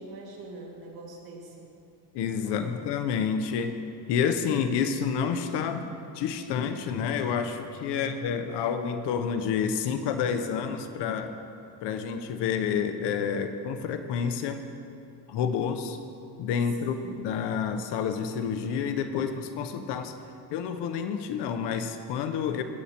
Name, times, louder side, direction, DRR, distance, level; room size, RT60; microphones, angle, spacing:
voice 1, 0.0-1.7 2.4-2.7 7.9-8.2 16.8-17.1, right 3 dB, 55° right, -1 dB, 2.1 m, -43 dB
voice 2, 2.1-3.8 4.1-5.9 6.1-11.3 11.8-14.6 15.3-16.0 16.4-20.1 20.5-22.6, left 7 dB, 65° left, 8 dB, 0.8 m, -29 dB
16.5 x 9.3 x 2.9 m, 2.6 s
cardioid pair, 140°, 45 cm